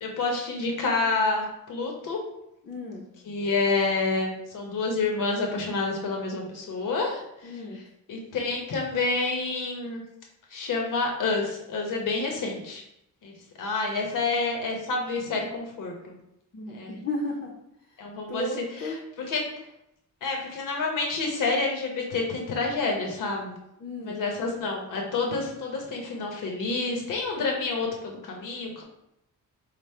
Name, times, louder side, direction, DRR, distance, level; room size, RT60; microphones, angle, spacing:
voice 1, 0.0-2.2 3.3-10.0 10.5-12.8 13.2-16.2 16.7-17.0 18.0-18.5 18.7-19.5 20.2-23.6 24.0-28.8, left 3 dB, 70° left, 1 dB, 0.9 m, -28 dB
voice 2, 2.7-3.0 7.4-7.8 16.5-17.5 18.3-19.0 23.8-24.2, left 1 dB, 40° left, -2 dB, 0.6 m, -33 dB
5.0 x 2.0 x 4.3 m, 0.82 s
wide cardioid pair, 170°, 33 cm